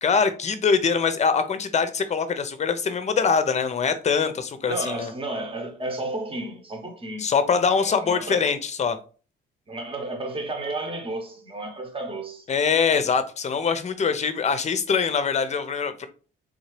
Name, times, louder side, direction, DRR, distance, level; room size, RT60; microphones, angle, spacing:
voice 1, 0.0-5.1 7.2-9.0 12.5-16.1, left 5 dB, 35° left, 0.6 m, -23 dB
voice 2, 4.6-7.3 7.6-8.4 9.7-12.4, right 2 dB, 25° right, 1.0 m, -32 dB
3.6 x 2.7 x 3.1 m
cardioid pair, 90°, 20 cm